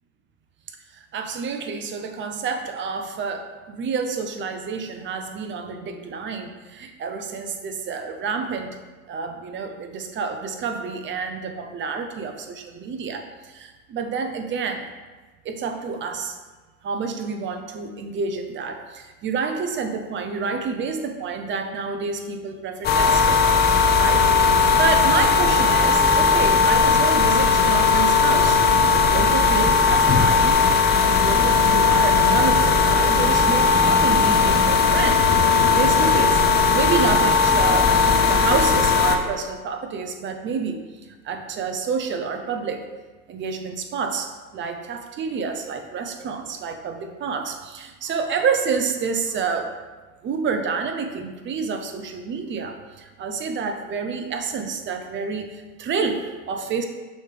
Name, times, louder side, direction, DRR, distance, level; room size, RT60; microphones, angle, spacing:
voice 1, 0.9-8.7 9.1-14.9 15.4-16.4 16.8-23.5 23.9-28.6 28.9-38.0 38.3-42.9 43.3-49.7 50.2-56.9, right 5 dB, 25° right, 6 dB, 0.7 m, -28 dB
sound 1, 22.8-39.2, left 4 dB, 25° left, 0.5 m, -17 dB
6.3 x 3.2 x 4.9 m, 1.3 s
hypercardioid pair, 95°, 43 cm